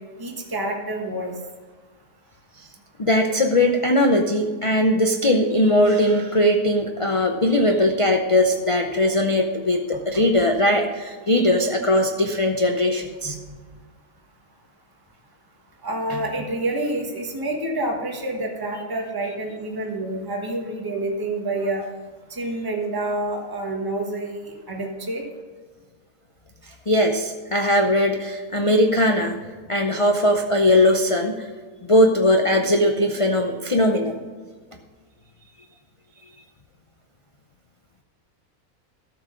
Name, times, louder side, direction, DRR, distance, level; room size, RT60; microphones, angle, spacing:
voice 1, 0.2-1.3 13.2-13.3 15.8-21.8 22.3-25.2, right 2 dB, 15° right, 1 dB, 1.3 m, -28 dB
voice 2, 3.0-13.4 26.7-29.4 29.7-31.5 31.9-34.2, left 1 dB, 35° left, 3 dB, 0.5 m, -20 dB
13.5 x 6.1 x 5.1 m, 1.5 s
omnidirectional pair, 1.6 m